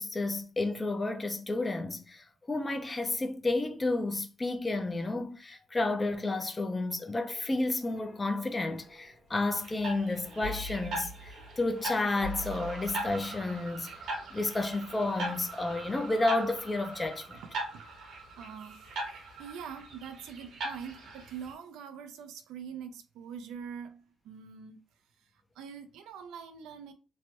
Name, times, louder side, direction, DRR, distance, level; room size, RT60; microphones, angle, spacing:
voice 1, 0.0-13.9 14.3-17.4, left 2 dB, 20° left, 0.5 m, -31 dB
sound 1, 5.7-18.0 18.4-18.6, left 1 dB, 40° left, 1.4 m, -48 dB
sound 2, 9.6-21.5, right 2 dB, 75° right, 1.0 m, -40 dB
voice 2, 17.4-17.8 18.4-18.8 19.4-24.8 25.6-26.9, right 7 dB, 90° right, 0.4 m, -44 dB
3.1 x 2.1 x 2.8 m
cardioid pair, 90°, 0 cm